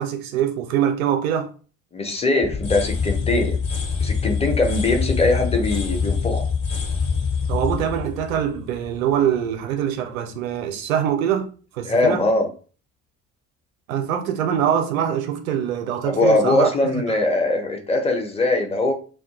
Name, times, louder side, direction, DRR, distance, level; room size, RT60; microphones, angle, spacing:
voice 1, 0.0-1.5 7.5-11.5 11.7-12.2 13.9-17.2, right 9 dB, 70° right, 0.6 m, -24 dB
voice 2, 1.9-3.6 4.0-6.4 11.8-12.5 16.0-18.9, left 2 dB, 15° left, 0.5 m, -21 dB
sound 1, 2.4-9.3, left 5 dB, 55° left, 1.2 m, -25 dB
2.2 x 2.2 x 2.9 m
figure-of-eight pair, 50°, 43 cm